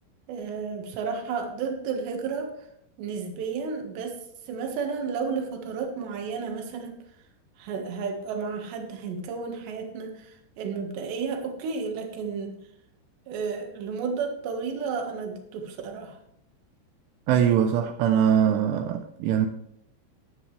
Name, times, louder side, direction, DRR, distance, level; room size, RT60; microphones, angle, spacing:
voice 1, 0.3-2.5 3.0-4.2 4.5-7.0 7.6-12.6 13.3-16.2, right 5 dB, 70° right, 4 dB, 3.7 m, -32 dB
voice 2, 17.3-19.5, right 9 dB, 85° right, 5 dB, 3.2 m, -22 dB
16.0 x 10.5 x 3.3 m, 0.73 s
omnidirectional pair, 5.4 m